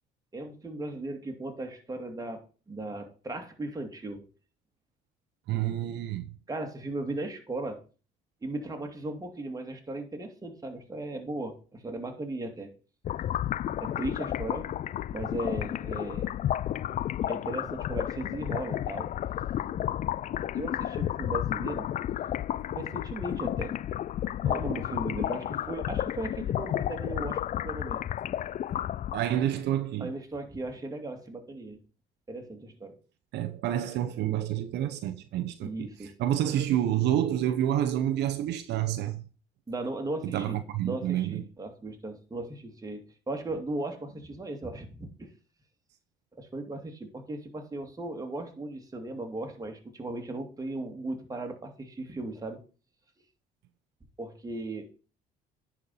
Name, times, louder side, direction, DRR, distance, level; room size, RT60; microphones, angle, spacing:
voice 1, 0.3-4.3 6.5-7.8 8.4-12.7 13.8-14.7 15.1-16.3 17.3-19.1 20.5-21.9 22.7-23.8 24.4-28.0 30.0-31.8 32.3-33.0 35.6-36.1 39.7-45.3 46.3-52.6 54.2-54.9, right 2 dB, 20° right, 2.5 m, -37 dB
voice 2, 5.5-6.3 29.1-30.1 33.3-39.2 40.2-41.4, right 11 dB, 70° right, 0.9 m, -28 dB
sound 1, 13.1-29.5, left 11 dB, 45° left, 0.4 m, -32 dB
10.5 x 4.6 x 5.6 m
supercardioid pair, 80°, 18 cm